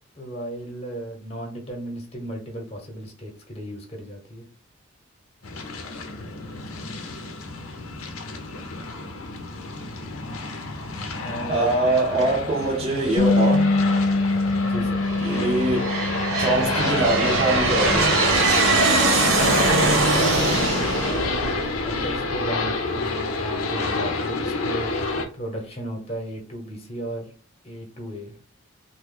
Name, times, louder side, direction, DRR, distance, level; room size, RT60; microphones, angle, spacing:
voice 1, 0.2-4.5 11.2-11.7 14.7-15.0 19.3-27.3 27.6-28.3, right 1 dB, 30° left, 1 dB, 0.9 m, -35 dB
sound 1, 5.4-25.3, left 3 dB, 80° left, 0.7 m, -30 dB
voice 2, 11.5-13.7 15.2-15.9 16.4-18.2, right 2 dB, 30° right, -3 dB, 0.6 m, -23 dB
Bass guitar, 13.2-19.4, left 2 dB, 50° left, 0.3 m, -25 dB
Aircraft, 13.5-14.1 14.8-22.4, right 2 dB, 60° right, 1.0 m, -22 dB
3.0 x 2.2 x 3.7 m, 0.39 s
head